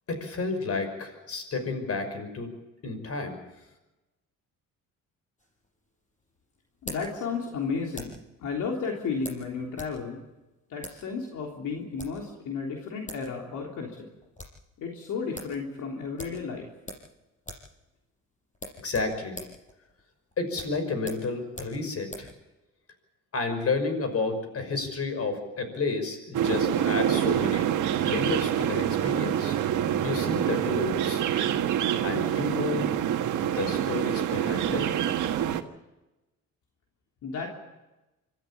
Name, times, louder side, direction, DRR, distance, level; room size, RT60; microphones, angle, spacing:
voice 1, 0.1-2.5 2.8-3.4 18.8-19.4 20.4-22.3 23.3-27.7 28.0-29.6 30.0-31.2 32.0-32.9 33.4-34.9, left 3 dB, 50° left, 8 dB, 6.0 m, -31 dB
sound 1, 5.4-8.3 9.2-10.0 10.2-10.3 10.8-11.0 11.8-12.3 12.8-12.9 13.1-13.3 13.6-13.7 14.0-14.6 15.0-15.1 15.3-15.6 16.2-17.1 17.4-17.7 18.0-18.1 18.5-22.3, left 1 dB, 25° left, 6.5 m, -43 dB
voice 2, 6.8-8.1 8.4-10.2 10.7-13.9 14.8-16.7 37.2-37.5, left 5 dB, 80° left, 0 dB, 3.5 m, -33 dB
sound 2, 26.3-35.6, right 10 dB, 80° right, 1.5 m, -26 dB
25.5 x 14.0 x 8.6 m, 1.0 s
cardioid pair, 90°, 30 cm